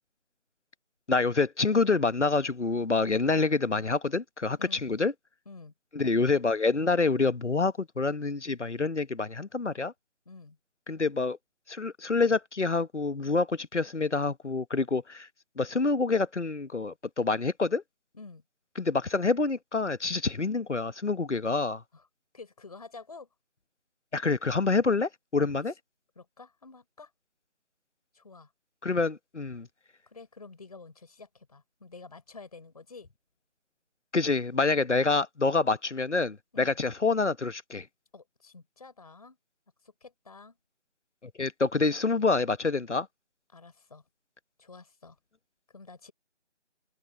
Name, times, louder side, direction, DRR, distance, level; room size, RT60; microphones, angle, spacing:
voice 1, 1.1-5.1 5.9-9.9 10.9-11.4 11.7-15.3 15.6-17.8 18.8-21.8 24.1-25.7 28.8-29.7 34.1-37.9 41.2-43.1, left 3 dB, 70° left, 1.4 m, -27 dB
voice 2, 4.6-4.9 5.4-5.7 10.2-10.6 18.1-18.4 21.9-22.1 22.3-23.3 26.1-27.1 28.1-28.5 30.1-33.1 36.5-36.8 38.1-39.4 39.8-40.6 43.5-44.0 44.6-45.2 45.7-46.1, left 4 dB, 30° left, 4.5 m, -49 dB
figure-of-eight pair, 170°, 37 cm